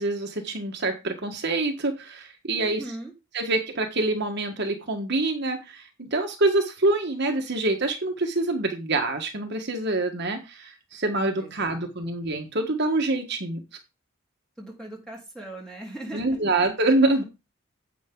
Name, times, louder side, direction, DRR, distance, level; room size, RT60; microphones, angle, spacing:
voice 1, 0.0-2.8 3.3-13.6 16.1-17.2, right 2 dB, 50° right, 4 dB, 1.4 m, -26 dB
voice 2, 2.6-3.1 11.4-11.9 14.6-16.4, right 1 dB, 5° left, -2 dB, 3.6 m, -39 dB
10.0 x 8.1 x 3.8 m, 0.27 s
head